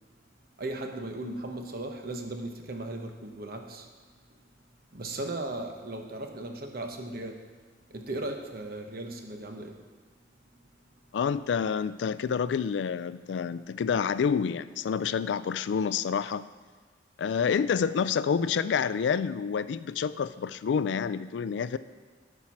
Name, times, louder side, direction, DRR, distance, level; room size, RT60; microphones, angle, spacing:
voice 1, 0.6-3.9 4.9-7.4 7.9-9.8, right 2 dB, 55° right, 4 dB, 1.0 m, -37 dB
voice 2, 11.1-16.5 17.2-21.8, left 6 dB, 80° left, 15 dB, 0.3 m, -28 dB
11.5 x 4.6 x 5.8 m, 1.5 s
head